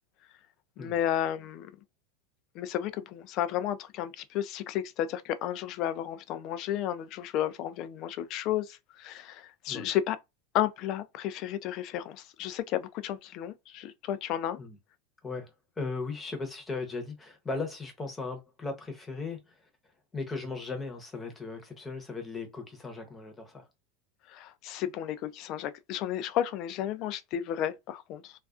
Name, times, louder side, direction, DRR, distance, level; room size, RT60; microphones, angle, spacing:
voice 1, 0.8-1.7 2.6-10.2 10.5-14.6 24.3-28.3, left 11 dB, 45° left, 0.3 m, -32 dB
voice 2, 15.2-19.6 20.1-23.6, left 3 dB, 15° left, 0.8 m, -37 dB
2.4 x 2.3 x 2.4 m
supercardioid pair, 125°, 0 cm